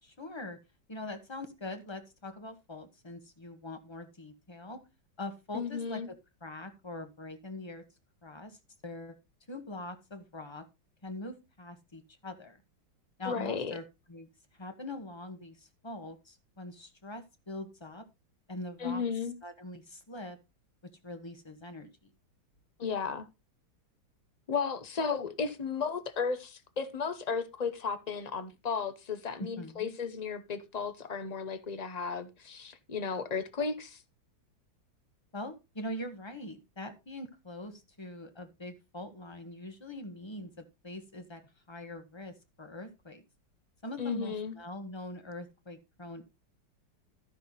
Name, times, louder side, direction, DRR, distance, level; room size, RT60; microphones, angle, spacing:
voice 1, 0.0-0.6 0.9-4.8 5.2-6.2 6.4-7.8 8.2-8.6 8.8-9.1 9.5-10.6 11.0-12.6 13.2-13.8 14.1-14.3 14.6-18.0 18.5-19.0 19.4-20.4 21.0-22.1 29.4-29.9 35.3-41.4 41.7-43.2 43.8-46.2, left 1 dB, 20° left, 0.9 m, -43 dB
voice 2, 5.5-6.1 13.3-13.7 18.8-19.3 22.8-23.3 24.5-34.0 44.0-44.5, left 5 dB, 50° left, 0.4 m, -34 dB
13.5 x 5.8 x 3.9 m
omnidirectional pair, 2.1 m